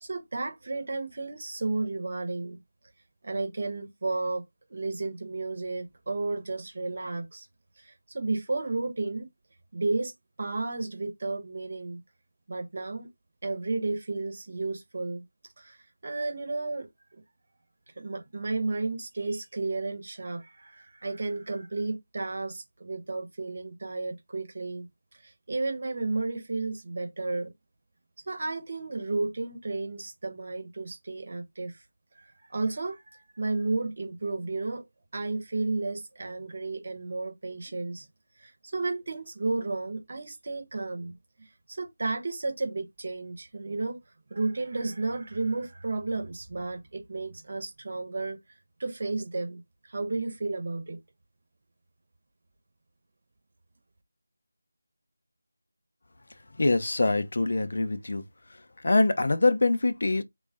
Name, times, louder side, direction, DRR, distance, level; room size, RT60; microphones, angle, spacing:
voice 1, 0.0-2.6 3.2-4.4 4.7-7.5 7.8-9.3 9.7-10.1 10.4-12.0 12.5-13.1 13.4-15.2 15.6-17.2 18.0-24.9 25.1-27.5 28.3-31.8 32.1-34.8 35.1-38.1 38.4-44.0 44.3-48.4 48.8-51.0, right 3 dB, 45° right, 1.0 m, -33 dB
voice 2, 56.6-58.2 58.5-60.2, left 2 dB, 55° left, 0.6 m, -24 dB
3.8 x 2.4 x 3.8 m
figure-of-eight pair, 165°, 0 cm